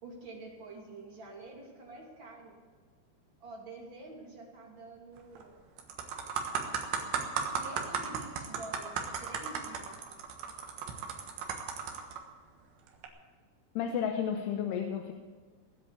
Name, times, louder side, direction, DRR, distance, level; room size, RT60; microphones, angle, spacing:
voice 1, 0.0-2.6 3.4-5.6 7.5-10.0, right 2 dB, 30° right, -2 dB, 3.1 m, -48 dB
sound 1, 5.2-5.4 5.8-12.2 12.9-13.1, right 6 dB, 70° right, 3.1 m, -35 dB
voice 2, 13.8-15.1, left 8 dB, 90° left, 4 dB, 3.0 m, -32 dB
18.5 x 7.9 x 8.5 m, 1.5 s
omnidirectional pair, 4.6 m